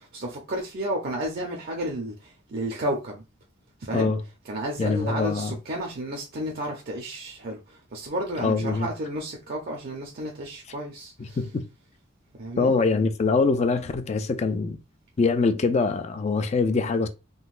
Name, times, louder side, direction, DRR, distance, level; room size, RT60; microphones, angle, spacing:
voice 1, 0.0-3.2 3.8-4.1 4.4-11.4 12.4-12.7, right 1 dB, 50° right, 0.6 m, -32 dB
voice 2, 4.8-5.5 8.4-8.9 11.2-11.7 12.6-14.8 15.2-17.1, left 4 dB, 35° left, 0.3 m, -24 dB
3.8 x 2.1 x 2.4 m
head